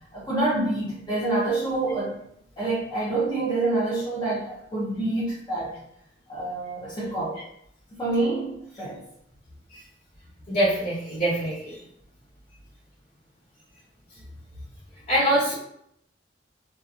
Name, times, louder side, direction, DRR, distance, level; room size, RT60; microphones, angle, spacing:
voice 1, 0.1-2.2 2.6-5.8 6.3-7.4 7.9-9.0, right 2 dB, 25° left, -8 dB, 0.6 m, -27 dB
voice 2, 10.5-11.7 15.1-15.5, right 1 dB, 45° left, -12 dB, 1.0 m, -23 dB
2.7 x 2.3 x 2.4 m, 0.74 s
head